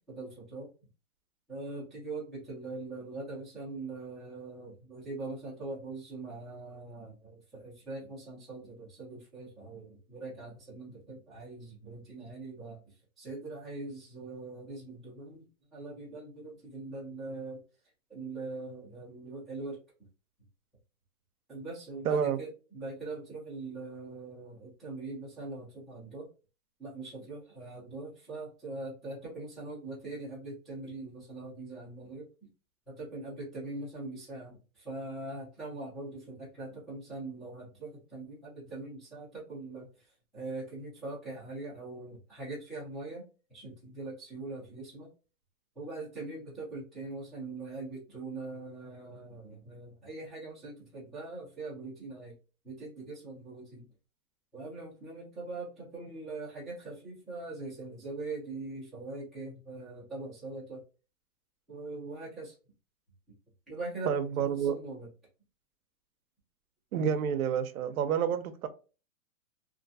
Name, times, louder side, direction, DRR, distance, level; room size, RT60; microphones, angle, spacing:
voice 1, 0.1-0.7 1.5-12.8 13.2-15.4 15.7-17.6 18.1-19.8 21.5-26.3 26.8-32.3 32.9-43.2 43.5-45.1 45.8-52.3 52.6-53.9 54.5-60.8 61.7-62.5 63.7-65.1, right 3 dB, ahead, 0.5 m, -42 dB
voice 2, 22.1-22.4 64.1-64.8 66.9-68.7, right 7 dB, 75° right, 0.6 m, -29 dB
2.5 x 2.2 x 2.6 m
hypercardioid pair, 150°, 43 cm